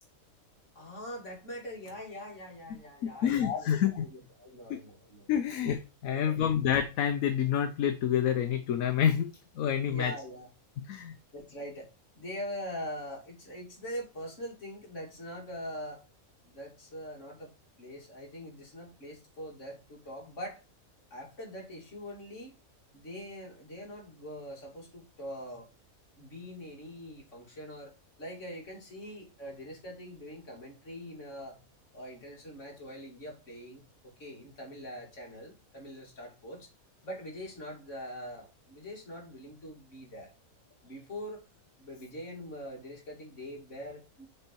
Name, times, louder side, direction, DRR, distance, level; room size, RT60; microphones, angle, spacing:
voice 1, 0.7-5.3 6.0-6.4 9.8-10.5 11.3-11.9 12.1-16.0 16.4-17.5 17.8-20.6 21.1-22.5 22.9-25.7 26.2-27.9 28.2-31.6 31.9-36.7 37.0-40.3 40.8-41.4 41.8-44.3, equal, 55° left, -2 dB, 2.9 m, -43 dB
voice 2, 3.0-4.1 4.7-4.8 5.3-9.3 9.6-10.1 10.9-11.1, left 9 dB, 75° left, 7 dB, 1.1 m, -28 dB
6.6 x 4.2 x 4.5 m, 0.30 s
omnidirectional pair, 1.5 m